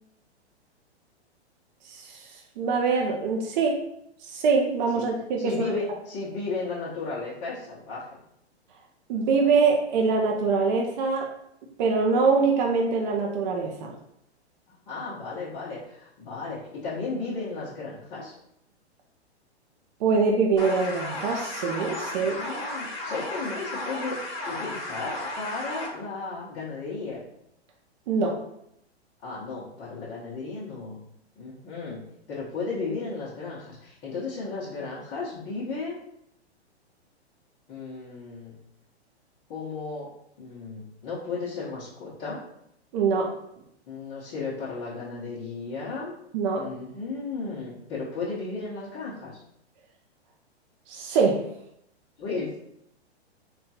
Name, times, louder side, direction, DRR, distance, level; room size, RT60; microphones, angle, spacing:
voice 1, 1.8-3.8 4.2-5.8 9.1-11.3 11.8-13.9 20.0-22.4 28.1-28.4 42.9-43.3 46.3-46.6 50.9-51.4, right 4 dB, 45° right, 1 dB, 0.5 m, -24 dB
voice 2, 5.4-8.1 14.9-18.3 22.1-27.2 29.2-31.0 31.4-32.0 32.3-36.0 37.7-38.5 39.5-40.1 40.4-42.4 43.9-46.1 46.5-49.4 52.2-52.5, left 4 dB, 30° left, -9 dB, 0.8 m, -34 dB
sound 1, 20.6-25.9, left 2 dB, 45° left, 1.1 m, -34 dB
3.7 x 2.3 x 2.7 m, 0.76 s
hypercardioid pair, 125°, 33 cm